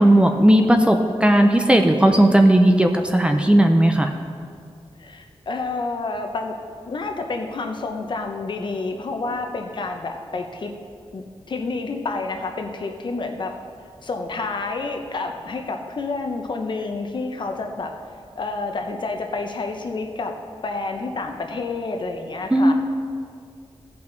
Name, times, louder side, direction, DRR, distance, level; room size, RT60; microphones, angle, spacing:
voice 1, 0.0-4.1 22.5-22.7, right 1 dB, 10° right, 5 dB, 0.5 m, -16 dB
voice 2, 5.0-6.5 6.9-10.7 11.1-13.6 14.0-17.9 18.3-20.4 20.6-22.7, left 3 dB, 50° left, 4 dB, 0.8 m, -29 dB
16.0 x 5.7 x 3.9 m, 2.2 s
wide cardioid pair, 145°, 11 cm